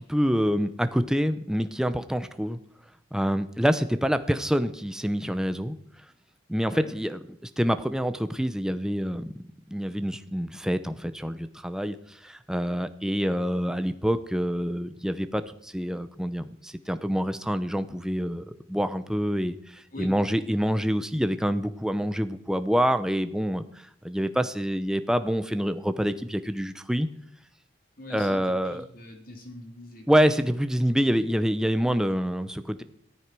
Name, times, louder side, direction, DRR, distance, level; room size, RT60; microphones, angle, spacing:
voice 1, 0.1-2.6 3.1-5.7 6.5-7.2 7.6-9.3 9.7-10.9 11.2-11.4 11.6-11.9 12.5-15.4 15.7-16.4 16.9-18.4 18.7-19.5 20.0-23.6 24.1-27.1 28.1-28.8 30.1-32.6, equal, 5° right, 10 dB, 0.7 m, -26 dB
voice 2, 6.6-6.9 19.9-20.1 28.0-30.1, left 2 dB, 45° left, 3 dB, 3.2 m, -42 dB
15.0 x 13.0 x 6.1 m, 0.70 s
head